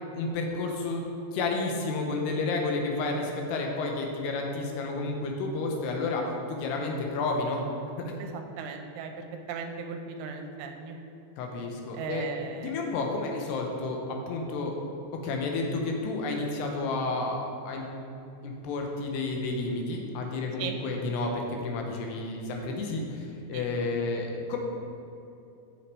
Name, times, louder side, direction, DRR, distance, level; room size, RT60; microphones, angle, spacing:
voice 1, 0.1-1.0 1.3-6.2 6.5-7.6 11.4-12.2 12.6-14.8 15.1-17.9 18.4-24.6, left 3 dB, 80° left, 1 dB, 2.9 m, -31 dB
voice 2, 8.2-9.1 9.5-11.0 11.9-12.7 20.6-20.8 23.5-23.6, right 6 dB, 80° right, 4 dB, 2.5 m, -37 dB
8.0 x 6.5 x 4.8 m, 2.8 s
omnidirectional pair, 4.9 m